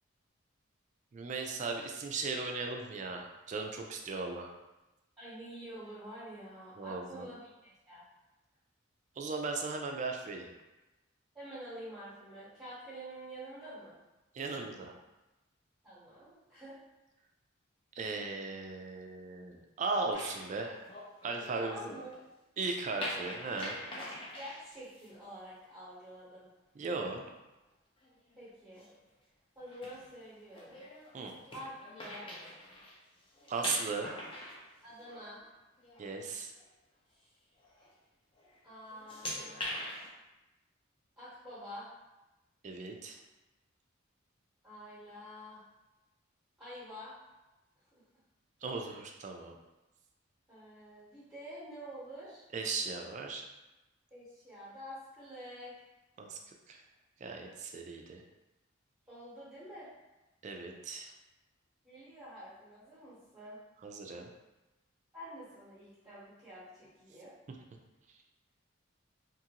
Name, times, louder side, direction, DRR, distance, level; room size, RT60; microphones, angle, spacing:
voice 1, 1.1-4.5 6.8-7.3 9.2-10.5 14.3-14.9 17.9-20.8 21.2-21.9 22.6-23.8 26.8-27.2 31.1-31.3 33.5-34.1 36.0-36.5 42.6-43.2 48.6-49.6 52.5-53.4 56.2-56.4 56.7-56.8 57.2-58.2 60.4-61.1 63.8-64.3, right 3 dB, 35° right, 2 dB, 0.3 m, -37 dB
voice 2, 5.2-8.0 11.3-14.0 15.8-16.7 21.6-22.1 23.9-24.1 24.3-26.5 28.4-28.8 29.6-30.8 31.5-32.3 34.8-35.4 38.6-39.7 41.2-41.9 44.6-45.6 46.6-47.1 48.8-48.9 50.5-52.4 54.1-55.7 59.1-59.9 61.8-63.6 65.1-67.3, equal, 5° right, -13 dB, 0.9 m, -48 dB
sound 1, 20.1-22.2 23.0-25.1 28.0-28.4 28.8-29.0 29.6-33.0 33.2-35.5 35.8-36.1 36.6-36.7 37.6-37.9 38.4-38.6 38.8-40.1, left 1 dB, 25° left, 0.5 m, -43 dB
2.9 x 2.4 x 2.8 m, 1.0 s
head